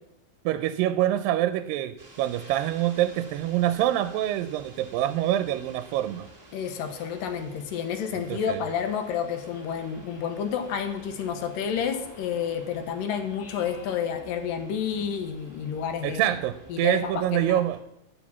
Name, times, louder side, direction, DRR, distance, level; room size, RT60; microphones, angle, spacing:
voice 1, 0.5-6.3 8.3-8.6 16.0-17.8, right 13 dB, 85° right, 11 dB, 2.2 m, -26 dB
sound 1, 2.0-17.8, right 2 dB, 20° right, 1.4 m, -51 dB
voice 2, 6.5-16.2 16.7-17.6, left 7 dB, 75° left, 6 dB, 2.6 m, -30 dB
Speech synthesizer, 6.6-7.7 8.4-9.5 10.1-10.7 11.7-12.7 13.4-14.5, left 4 dB, 55° left, 1.9 m, -52 dB
9.9 x 7.2 x 7.2 m, 0.83 s
omnidirectional pair, 4.1 m